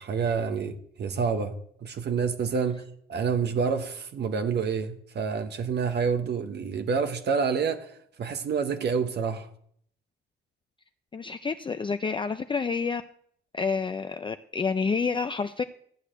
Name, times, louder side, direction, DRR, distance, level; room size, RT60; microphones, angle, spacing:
voice 1, 0.0-2.8 3.1-9.5, right 5 dB, 60° right, 1.1 m, -28 dB
voice 2, 11.1-13.0 13.5-15.6, left 5 dB, 25° left, 0.5 m, -28 dB
13.5 x 4.8 x 8.9 m
cardioid pair, 90°, 20 cm